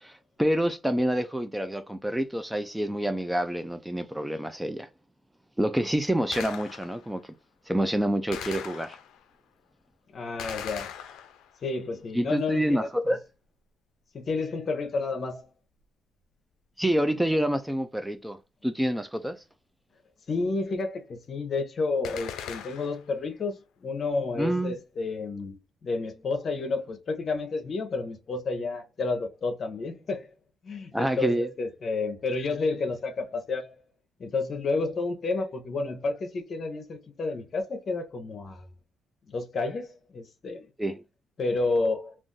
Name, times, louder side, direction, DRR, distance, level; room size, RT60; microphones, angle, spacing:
voice 1, 0.0-4.9 5.6-7.3 7.7-9.0 12.1-13.2 16.8-18.4 18.6-19.4 24.4-24.8 30.9-31.5 40.8-41.0, right 1 dB, 5° right, 0.3 m, -27 dB
Gunshot gunfire, 6.3-7.1 8.3-9.3 10.4-11.7 22.0-23.1, left 8 dB, 85° left, 0.4 m, -39 dB
voice 2, 10.1-10.9 11.6-12.9 14.1-15.5 20.3-30.3 30.6-33.7 34.2-38.7 39.3-40.7 41.4-42.2, left 3 dB, 50° left, 0.7 m, -30 dB
2.5 x 2.4 x 3.7 m
cardioid pair, 90°, 0 cm